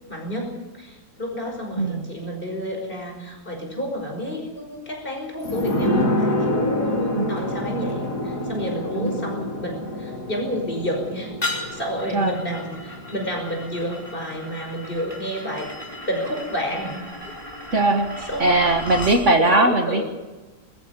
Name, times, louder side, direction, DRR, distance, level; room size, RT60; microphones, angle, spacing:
voice 1, 0.1-11.3 11.7-15.7 16.1-17.3 18.3-18.5 19.3-20.1, equal, 30° left, 1 dB, 5.8 m, -30 dB
voice 2, 1.8-2.1 7.2-7.3 8.9-9.3 12.1-12.4 17.7-20.1, right 2 dB, 50° right, 5 dB, 1.8 m, -20 dB
sound 1, 5.4-14.7 15.0-15.1, left 1 dB, 80° left, 3.6 m, -27 dB
sound 2, 11.4-19.2, left 1 dB, 15° left, 5.0 m, -35 dB
21.5 x 14.0 x 9.6 m, 1.2 s
omnidirectional pair, 1.7 m